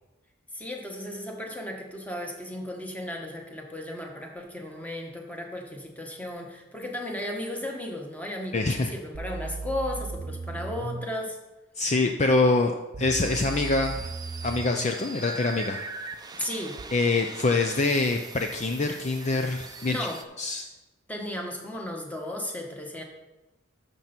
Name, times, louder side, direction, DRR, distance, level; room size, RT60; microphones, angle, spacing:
voice 1, 0.5-8.6 8.9-11.4 16.3-16.8 19.8-20.2 21.1-23.0, left 1 dB, 10° left, 1 dB, 1.4 m, -35 dB
voice 2, 8.5-8.9 11.7-14.1 14.4-16.2 16.9-20.0 20.4-20.6, left 3 dB, 35° left, 4 dB, 0.5 m, -25 dB
sound 1, 9.1-11.1 12.9-14.9 16.8-16.9, right 3 dB, 65° right, 0.6 m, -36 dB
sound 2, 13.2-20.2, right 3 dB, 20° right, 0.6 m, -41 dB
12.0 x 6.8 x 4.4 m, 1.0 s
head